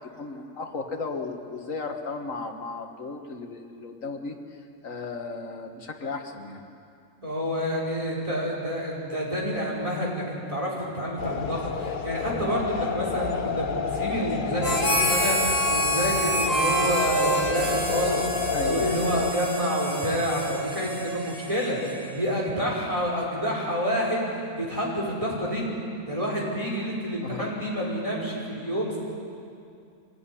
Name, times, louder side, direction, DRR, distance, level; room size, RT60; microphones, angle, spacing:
voice 1, 0.2-4.4 4.8-6.7 18.5-19.1 27.2-27.5, left 4 dB, 80° left, 5 dB, 2.0 m, -35 dB
voice 2, 7.2-25.7 26.1-29.0, equal, 25° right, -4 dB, 5.4 m, -28 dB
sound 1, 11.2-19.3, left 6 dB, 45° left, 0.9 m, -30 dB
Harmonica, 14.6-22.3, right 1 dB, 15° left, 3.8 m, -27 dB
24.5 x 17.5 x 9.9 m, 2.5 s
omnidirectional pair, 1.3 m